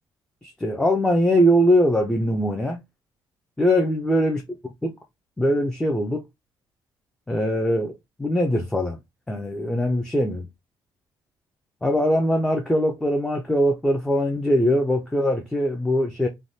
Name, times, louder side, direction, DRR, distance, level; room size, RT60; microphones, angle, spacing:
voice 1, 0.4-2.8 3.6-4.9 5.4-6.2 7.3-9.0 9.3-10.5 11.8-16.3, equal, 5° left, 0.4 m, -22 dB
3.3 x 2.2 x 2.6 m
cardioid pair, 150°, 8 cm